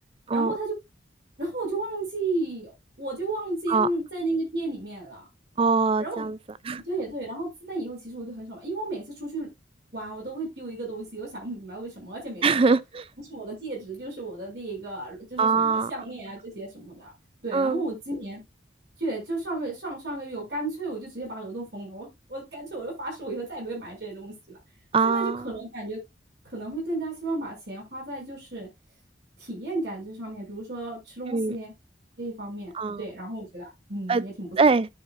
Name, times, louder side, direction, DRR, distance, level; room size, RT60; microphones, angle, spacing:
voice 1, 0.3-0.7 1.4-2.7 3.0-5.2 6.0-6.3 6.8-9.5 9.9-12.7 13.3-17.1 17.4-18.4 19.0-24.6 25.0-26.0 26.5-28.7 29.4-31.7 32.2-34.5, right 2 dB, 60° right, 6.3 m, -33 dB
voice 2, 5.6-6.4 6.6-6.8 12.4-13.0 15.4-15.9 17.5-17.8 24.9-25.5 31.3-31.5 32.7-33.0 34.1-34.2 34.6-34.9, right 4 dB, 30° right, 0.4 m, -22 dB
12.5 x 5.7 x 2.5 m
head